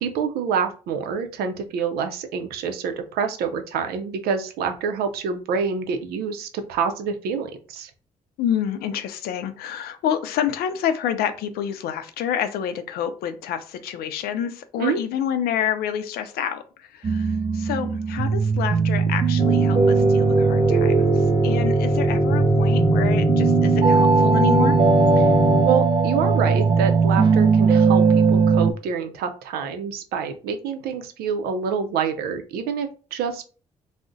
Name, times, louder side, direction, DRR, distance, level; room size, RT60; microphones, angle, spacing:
voice 1, 0.0-7.9 14.8-15.0 25.2-25.3 25.7-33.4, right 6 dB, 90° right, 7 dB, 0.5 m, -27 dB
voice 2, 8.4-21.1 21.4-24.8, left 9 dB, 90° left, 10 dB, 0.4 m, -28 dB
sound 1, 17.0-28.7, right 5 dB, 30° right, 0.4 m, -19 dB
sound 2, 19.4-25.6, left 2 dB, 35° left, 0.8 m, -24 dB
2.4 x 2.0 x 3.7 m, 0.38 s
supercardioid pair, 55°, 16 cm